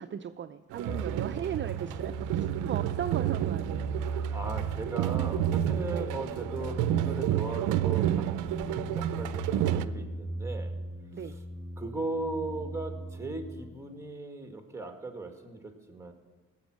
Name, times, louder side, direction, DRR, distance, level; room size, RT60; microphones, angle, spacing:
voice 1, 0.0-2.4 2.6-3.9 5.9-6.1 11.1-11.4, right 9 dB, 40° right, 9 dB, 0.5 m, -37 dB
sound 1, 0.7-9.8, right 13 dB, 90° right, 0.5 m, -30 dB
sound 2, 0.9-13.8, right 2 dB, 15° left, 4.2 m, -38 dB
voice 2, 4.0-8.3 8.6-10.8 11.2-11.4 11.8-16.1, right 2 dB, 10° right, 5 dB, 1.8 m, -38 dB
17.0 x 7.2 x 6.3 m, 1.4 s
cardioid pair, 90°, 30 cm